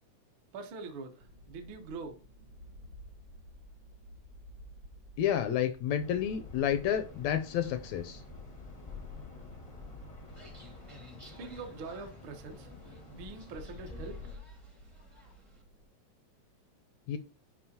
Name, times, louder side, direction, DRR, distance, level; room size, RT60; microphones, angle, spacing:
voice 1, 0.5-2.2 11.4-12.7 13.1-14.2, right 4 dB, 65° right, 1.3 m, -43 dB
sound 1, 1.2-15.9, equal, 90° right, 1.0 m, -54 dB
voice 2, 5.2-8.2 17.1-17.2, left 9 dB, 80° left, 1.7 m, -30 dB
sound 2, 6.0-14.4, left 4 dB, 60° left, 0.4 m, -48 dB
sound 3, 10.3-15.6, equal, 20° right, 0.7 m, -56 dB
11.0 x 4.9 x 2.8 m
omnidirectional pair, 3.4 m